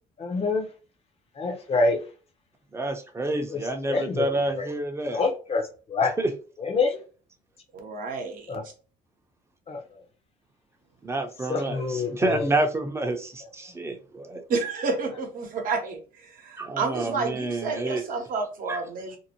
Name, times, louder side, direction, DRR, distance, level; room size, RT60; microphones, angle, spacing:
voice 1, 0.2-0.7 1.4-2.0 3.5-3.6 3.9-4.2 4.6-4.7 5.1-6.1 6.6-7.0 8.5-8.6 9.7-9.8 11.5-12.5, left 3 dB, 35° left, 0.7 m, -26 dB
voice 2, 2.7-5.2 6.2-6.3 11.0-14.4 16.6-18.0 18.7-18.8, right 2 dB, 15° right, 0.6 m, -28 dB
voice 3, 7.7-8.5 14.5-19.2, right 4 dB, 55° right, 0.9 m, -30 dB
2.6 x 2.0 x 2.8 m
cardioid pair, 110°, 17 cm